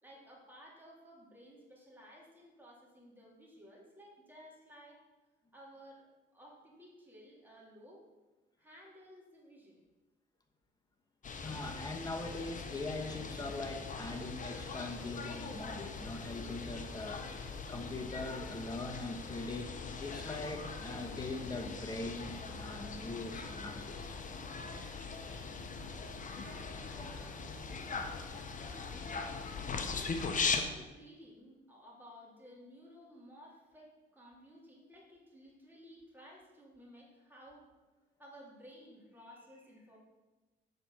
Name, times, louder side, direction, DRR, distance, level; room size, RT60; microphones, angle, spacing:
voice 1, 0.0-5.0 5.5-8.0 8.6-9.8 25.2-25.4 26.3-27.4 30.0-37.7 38.2-40.0, equal, 10° right, -4 dB, 2.7 m, -56 dB
sound 1, 11.2-30.6, left 4 dB, 40° left, 0.9 m, -40 dB
voice 2, 11.4-19.7 20.0-24.2, left 2 dB, 20° left, 3 dB, 1.2 m, -42 dB
7.8 x 4.4 x 6.1 m, 1.2 s
cardioid pair, 90°, 20 cm